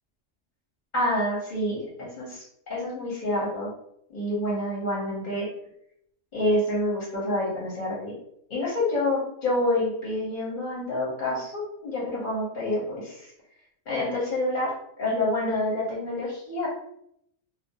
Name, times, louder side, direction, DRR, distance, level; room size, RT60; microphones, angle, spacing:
voice 1, 0.9-2.4 2.7-3.7 4.1-5.5 6.3-8.1 8.5-13.3 13.9-14.7 15.0-16.7, left 1 dB, 45° left, -5 dB, 0.7 m, -27 dB
2.4 x 2.0 x 2.7 m, 0.75 s
omnidirectional pair, 1.4 m